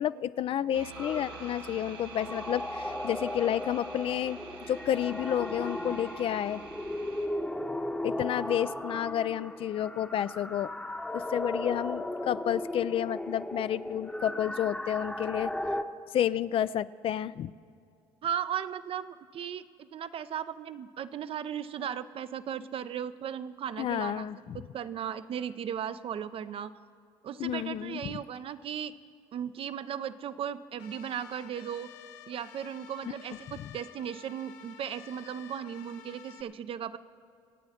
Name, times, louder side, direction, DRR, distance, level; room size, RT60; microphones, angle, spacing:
voice 1, 0.0-4.4 4.7-6.6 8.0-10.7 11.1-15.5 16.1-17.5 23.8-24.6 27.4-28.1 33.6-33.7, left 10 dB, 50° left, 16 dB, 0.4 m, -30 dB
sound 1, 0.7-7.3, right 5 dB, 85° right, 1.9 m, -47 dB
sound 2, 0.9-15.8, left 1 dB, 10° left, 0.9 m, -36 dB
voice 2, 18.2-24.3 24.5-26.7 27.2-28.9 29.3-31.9 32.3-37.0, right 9 dB, 50° right, 13 dB, 0.6 m, -36 dB
sound 3, 30.8-36.4, left 9 dB, 80° left, 0.7 m, -51 dB
25.5 x 8.7 x 4.3 m, 2.3 s
hypercardioid pair, 65°, 12 cm